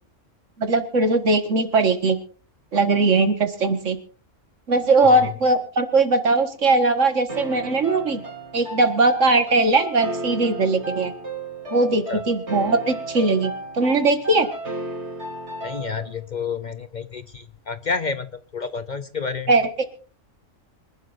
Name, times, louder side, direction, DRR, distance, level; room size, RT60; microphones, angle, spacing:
voice 1, 0.6-2.2 2.7-4.0 4.7-8.2 8.5-11.1 11.7-14.5 19.5-19.7, right 3 dB, 75° right, 7 dB, 2.1 m, -20 dB
sound 1, 7.3-16.2, right 1 dB, 60° right, 3.8 m, -34 dB
voice 2, 15.6-19.5, left 5 dB, 45° left, 11 dB, 0.7 m, -30 dB
25.0 x 11.5 x 2.6 m, 0.40 s
omnidirectional pair, 1.3 m